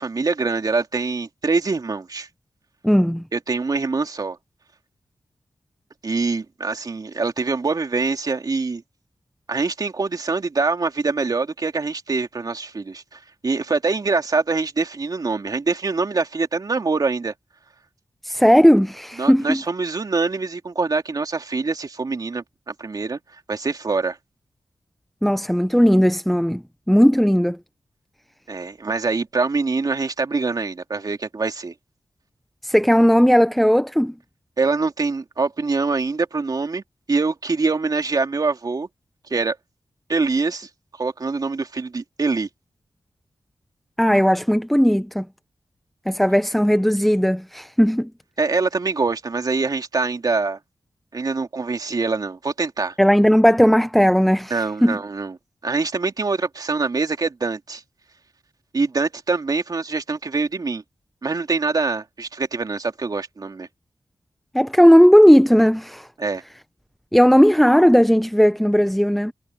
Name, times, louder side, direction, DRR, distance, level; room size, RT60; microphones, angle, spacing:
voice 1, 0.0-2.3 3.3-4.4 6.0-8.8 9.5-17.3 19.2-23.2 23.5-24.2 28.5-31.7 34.6-36.8 37.1-38.9 39.3-39.6 40.1-40.7 41.0-42.5 48.4-50.6 51.1-52.9 54.5-55.3 55.6-57.8 58.7-60.8 61.2-63.7 66.2-66.4, right 4 dB, 50° right, 3.0 m, -24 dB
voice 2, 2.8-3.2 18.2-19.6 25.2-27.6 32.6-34.1 44.0-45.3 46.1-48.1 53.0-55.0 64.5-66.1 67.1-69.3, equal, ahead, 0.6 m, -16 dB
wide cardioid pair, 85°, 8 cm